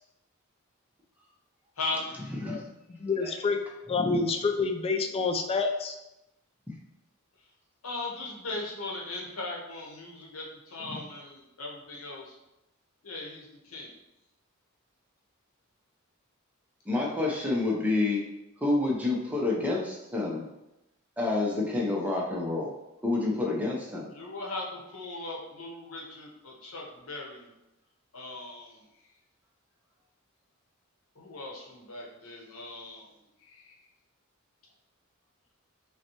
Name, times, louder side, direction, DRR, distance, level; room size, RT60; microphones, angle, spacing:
voice 1, 2.9-3.6 3.9-5.9, left 4 dB, 25° left, 4 dB, 0.3 m, -28 dB
voice 2, 7.8-12.4 13.0-13.9 24.1-27.5 28.1-29.1 31.1-33.9, left 2 dB, 75° left, -2 dB, 0.9 m, -39 dB
voice 3, 16.9-18.2 18.6-20.4 21.2-22.7 23.0-24.1, left 2 dB, 5° right, -2 dB, 0.7 m, -28 dB
5.4 x 2.2 x 2.9 m, 0.92 s
head